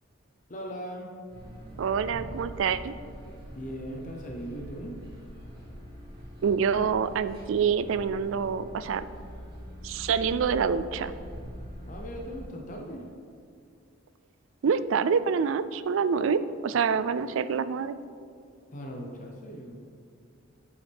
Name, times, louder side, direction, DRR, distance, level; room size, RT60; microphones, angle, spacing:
voice 1, 0.5-1.1 3.5-5.0 11.8-13.0 18.7-19.9, equal, 40° left, 1 dB, 0.8 m, -39 dB
sound 1, 1.3-12.4, equal, 50° right, 2.1 m, -44 dB
voice 2, 1.8-2.9 6.4-9.0 9.8-11.1 14.6-18.0, right 6 dB, 70° right, 14 dB, 0.4 m, -26 dB
sound 2, 2.1-4.8, equal, 65° left, 1.2 m, -48 dB
8.5 x 8.1 x 3.5 m, 2.3 s
head